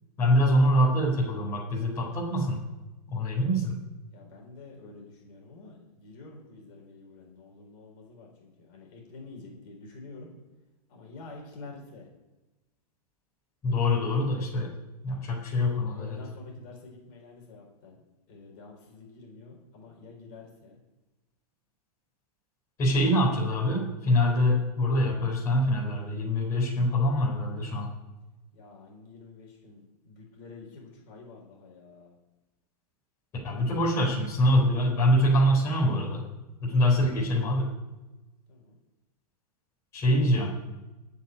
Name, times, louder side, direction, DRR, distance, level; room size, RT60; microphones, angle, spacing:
voice 1, 0.2-2.6 3.1-3.8 13.6-14.7 15.0-16.2 22.8-27.9 33.4-36.2 36.6-37.7 39.9-40.6, equal, 15° left, -6 dB, 4.3 m, -24 dB
voice 2, 4.1-10.3 10.9-12.1 15.7-20.8 28.5-32.1 38.5-38.8, left 3 dB, 30° left, -1 dB, 4.4 m, -48 dB
14.5 x 5.9 x 10.0 m, 1.1 s
hypercardioid pair, 175°, 20 cm